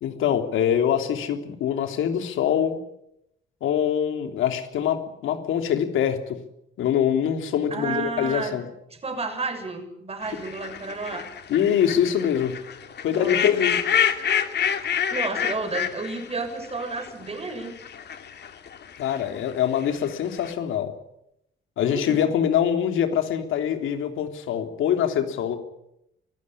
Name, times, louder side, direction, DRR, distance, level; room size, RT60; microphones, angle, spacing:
voice 1, 0.0-2.8 3.6-6.4 6.8-8.6 11.5-12.6 13.0-13.8 19.0-20.9 21.8-25.6, left 9 dB, 80° left, 6 dB, 3.4 m, -24 dB
voice 2, 7.7-8.6 9.0-11.3 13.1-13.4 15.1-17.7 21.8-22.3, right 3 dB, 30° right, 6 dB, 6.6 m, -31 dB
sound 1, 10.2-19.4 19.8-20.5, left 8 dB, 60° left, 2.6 m, -28 dB
23.5 x 15.5 x 9.9 m, 0.80 s
cardioid pair, 90°, 20 cm